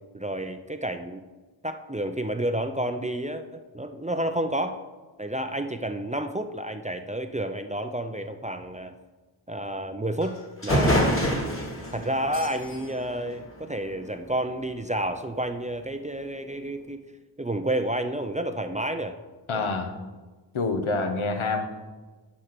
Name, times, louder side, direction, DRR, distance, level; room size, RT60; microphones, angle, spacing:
voice 1, 0.1-1.2 1.6-4.8 5.2-8.9 9.5-11.0 11.9-17.0 17.4-19.2 19.5-19.7, right 1 dB, 15° right, 8 dB, 0.4 m, -30 dB
sound 1, 10.2-10.3 10.6-14.1, equal, 25° left, 1.6 m, -27 dB
voice 2, 19.5-19.9 20.5-21.7, left 3 dB, 85° left, 6 dB, 1.2 m, -26 dB
9.9 x 4.4 x 6.7 m, 1.3 s
wide cardioid pair, 115°, 47 cm